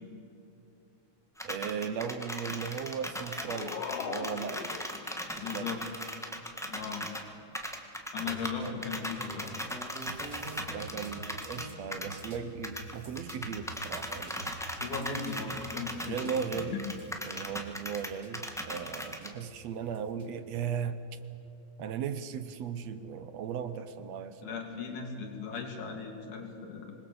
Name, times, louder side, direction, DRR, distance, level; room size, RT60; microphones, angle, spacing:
sound 1, 1.4-7.2 7.5-12.3 12.6-19.3, equal, ahead, 0.9 m, -38 dB
voice 1, 1.4-4.7 5.4-5.7 8.6-8.8 10.7-14.5 16.0-16.8 17.2-21.0 21.8-24.6, right 7 dB, 70° right, 12 dB, 1.9 m, -37 dB
sound 2, 3.0-5.9, left 8 dB, 65° left, 1.7 m, -41 dB
voice 2, 5.4-5.8 6.6-7.0 8.1-9.5 14.8-16.7 17.2-17.3 24.4-26.9, left 5 dB, 85° left, 2 dB, 4.5 m, -38 dB
sound 3, 8.2-20.7, right 2 dB, 30° right, 2.5 m, -47 dB
26.5 x 21.0 x 7.0 m, 2.8 s
omnidirectional pair, 3.4 m